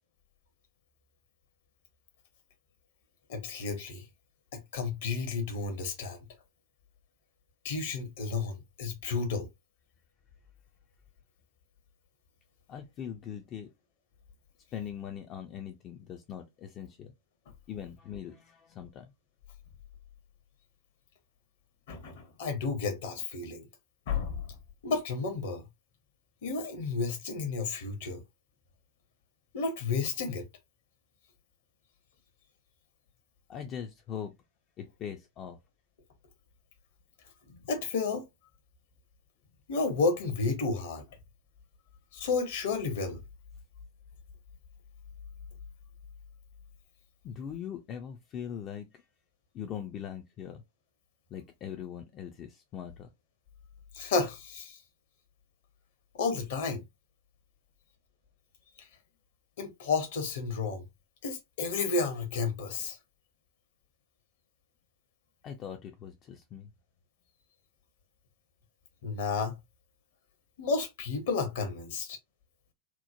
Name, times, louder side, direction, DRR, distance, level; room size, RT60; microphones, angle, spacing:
voice 1, 3.3-4.0 4.5-6.2 7.6-9.5 21.9-23.7 24.1-24.4 24.8-25.6 26.4-28.2 29.5-30.5 37.5-38.2 39.7-41.0 42.1-43.2 53.9-54.8 56.1-56.8 59.6-60.8 61.2-63.0 69.0-69.6 70.6-72.2, left 4 dB, 55° left, 0.7 m, -32 dB
voice 2, 12.7-13.7 14.7-17.1 17.7-19.1 33.5-34.3 34.8-35.6 47.2-49.0 49.5-50.6 51.3-53.1 65.4-66.7, left 8 dB, 30° left, 0.4 m, -41 dB
3.0 x 2.1 x 2.4 m
figure-of-eight pair, 90°, 0 cm